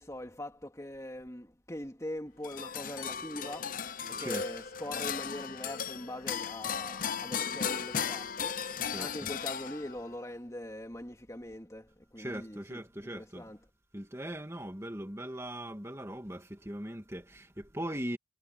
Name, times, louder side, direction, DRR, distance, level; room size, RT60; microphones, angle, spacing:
voice 1, 0.0-3.8 4.1-8.7 9.0-13.6, left 1 dB, 15° left, 2.7 m, -42 dB
sound 1, 2.4-10.1, left 7 dB, 45° left, 0.7 m, -36 dB
voice 2, 12.2-13.5 13.9-18.2, right 1 dB, 15° right, 2.4 m, -40 dB
head